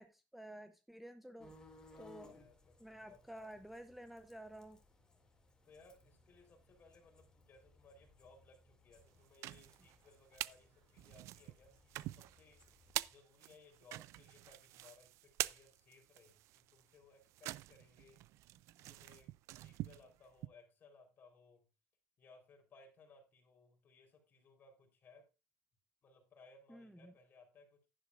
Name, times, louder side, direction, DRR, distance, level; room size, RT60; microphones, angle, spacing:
voice 1, 0.0-1.5 2.0-2.4 2.8-4.8 26.7-27.1, right 1 dB, 5° right, 9 dB, 0.6 m, -52 dB
sound 1, 1.4-13.1, left 2 dB, 15° left, 2.4 m, -65 dB
voice 2, 1.9-3.5 5.6-12.6 13.1-18.2 18.8-21.7 22.2-25.3 26.0-27.9, left 3 dB, 40° left, 3 dB, 3.7 m, -64 dB
sound 2, 9.1-10.6 11.0-20.5, right 16 dB, 65° right, 0.4 m, -46 dB
10.5 x 10.5 x 2.5 m, 0.27 s
cardioid pair, 125°, 5 cm